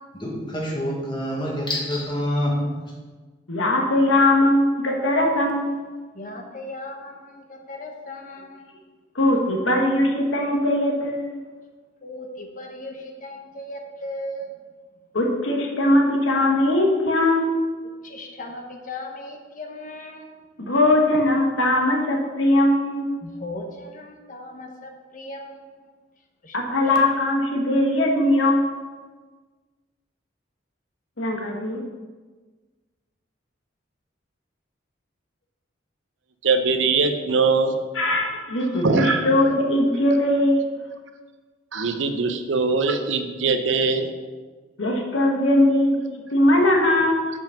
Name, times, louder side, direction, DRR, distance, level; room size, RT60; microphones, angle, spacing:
voice 1, 0.1-2.8, equal, 25° left, -3 dB, 1.6 m, -26 dB
voice 2, 3.5-5.8 9.1-11.4 15.1-17.6 20.6-23.1 26.5-28.7 31.2-31.8 37.9-40.8 44.8-46.0 46.3-47.2, left 1 dB, 80° left, 1 dB, 1.3 m, -20 dB
voice 3, 6.1-8.7 9.3-9.5 9.8-9.9 12.0-14.5 18.0-20.3 23.2-25.9 26.4-26.6, left 1 dB, 40° left, 3 dB, 0.9 m, -37 dB
voice 4, 36.4-37.8 38.8-39.3 41.7-44.1, right 4 dB, 75° right, 7 dB, 0.7 m, -21 dB
5.9 x 5.4 x 5.8 m, 1.4 s
head